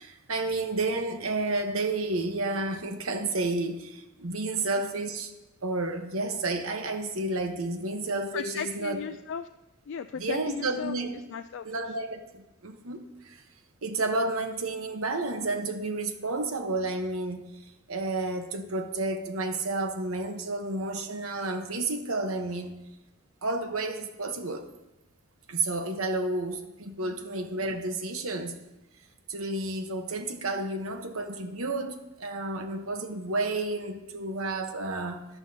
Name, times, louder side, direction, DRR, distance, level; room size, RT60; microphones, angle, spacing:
voice 1, 0.0-5.3 5.6-9.0 10.2-11.2 11.6-13.4 13.8-17.5 17.9-22.7 23.4-24.7 25.5-28.5 29.3-35.3, right 2 dB, 70° right, 6 dB, 1.1 m, -31 dB
voice 2, 8.3-9.5 9.9-11.0 11.3-11.6 27.0-27.2, left 7 dB, 60° left, 8 dB, 0.4 m, -37 dB
14.0 x 11.5 x 2.8 m, 0.95 s
head